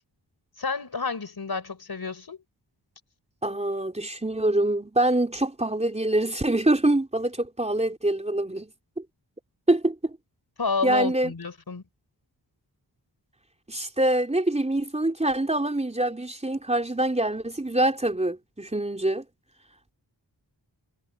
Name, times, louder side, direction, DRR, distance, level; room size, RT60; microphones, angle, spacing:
voice 1, 0.6-2.4 10.6-11.8, left 4 dB, 55° left, 4.5 m, -30 dB
voice 2, 3.4-9.0 9.7-10.2 10.8-11.3 13.7-19.3, right 1 dB, 15° right, 3.8 m, -25 dB
wide cardioid pair, 85°, 44 cm